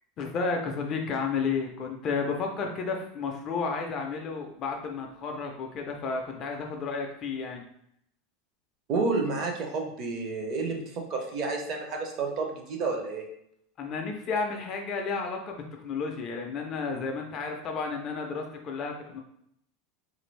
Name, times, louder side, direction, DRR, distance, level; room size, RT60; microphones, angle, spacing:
voice 1, 0.2-7.7 13.8-19.2, left 4 dB, 25° left, 2 dB, 0.4 m, -32 dB
voice 2, 8.9-13.3, right 3 dB, 30° right, 2 dB, 0.5 m, -30 dB
3.6 x 2.5 x 3.1 m, 0.72 s
supercardioid pair, 180°, 0 cm